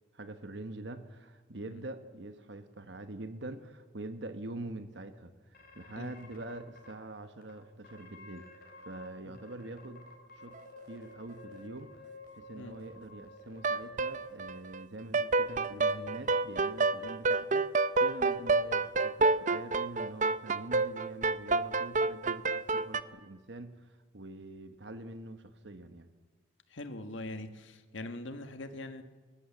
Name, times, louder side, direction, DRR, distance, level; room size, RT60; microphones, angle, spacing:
voice 1, 0.1-10.0 10.4-10.6 10.9-11.9 12.3-26.1, right 2 dB, 70° right, 9 dB, 1.3 m, -45 dB
sound 1, 5.5-6.9 7.4-7.5 7.8-9.1 9.3-14.5, left 2 dB, 50° left, 4.3 m, -52 dB
sound 2, 13.6-14.8 15.1-23.0, right 3 dB, 40° right, 0.7 m, -28 dB
voice 2, 26.7-29.0, left 2 dB, 85° left, 8 dB, 1.6 m, -42 dB
22.5 x 19.0 x 7.4 m, 1.4 s
head